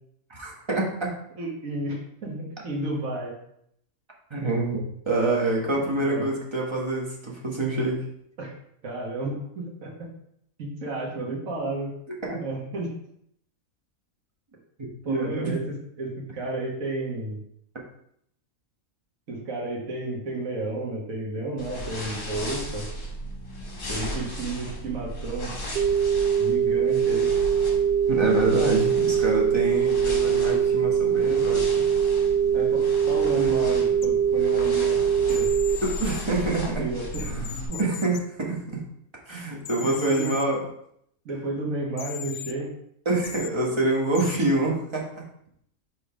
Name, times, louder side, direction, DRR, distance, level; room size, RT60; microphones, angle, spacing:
voice 1, 0.3-1.2 4.3-8.0 12.3-12.4 14.8-15.6 28.1-31.8 35.8-36.9 37.2-37.5 37.8-38.8 39.3-40.6 43.0-45.1, right 2 dB, 20° right, -2 dB, 1.3 m, -26 dB
voice 2, 1.4-3.4 5.8-6.3 8.4-8.5 8.8-10.1 10.6-11.9 12.4-13.0 15.0-17.4 19.3-22.9 23.9-25.5 26.4-27.3 32.5-35.0 35.3-35.5 36.8-37.3 37.7-37.8 39.8-40.3 41.2-42.7, right 2 dB, 70° right, -3 dB, 1.7 m, -32 dB
sound 1, 21.6-37.7, equal, 40° left, 1.4 m, -36 dB
sound 2, 25.8-35.8, right 8 dB, 85° right, 0.4 m, -22 dB
sound 3, 34.0-34.1 35.3-36.2 37.1-38.2 39.6-40.5 42.0-42.5 43.2-43.5 44.1-44.4, left 9 dB, 70° left, 0.9 m, -37 dB
5.2 x 3.8 x 5.0 m, 0.71 s
omnidirectional pair, 1.5 m